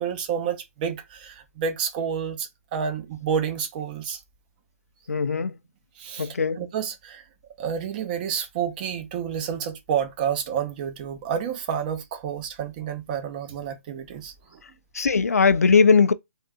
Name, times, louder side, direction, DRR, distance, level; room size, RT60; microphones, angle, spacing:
voice 1, 0.0-4.2 6.0-6.3 6.6-7.2 7.6-14.3, right 7 dB, 35° right, 0.7 m, -29 dB
voice 2, 5.1-5.6 6.2-6.6 14.9-16.1, left 5 dB, 80° left, 0.4 m, -19 dB
3.6 x 2.6 x 2.3 m
figure-of-eight pair, 135°, 8 cm